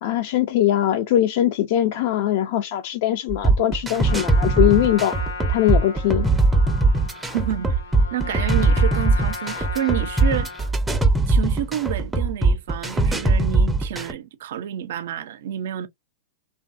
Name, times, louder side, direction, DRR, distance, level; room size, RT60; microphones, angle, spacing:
voice 1, 0.0-5.2 5.5-6.3, left 12 dB, 60° left, 0.4 m, -21 dB
sound 1, 3.3-14.1, right 2 dB, 10° right, 0.5 m, -20 dB
Trumpet, 3.9-10.7, left 4 dB, 75° left, 1.0 m, -35 dB
voice 2, 7.3-7.8 8.1-10.5 11.3-15.9, right 11 dB, 65° right, 0.4 m, -29 dB
2.6 x 2.2 x 2.4 m
hypercardioid pair, 105°, 0 cm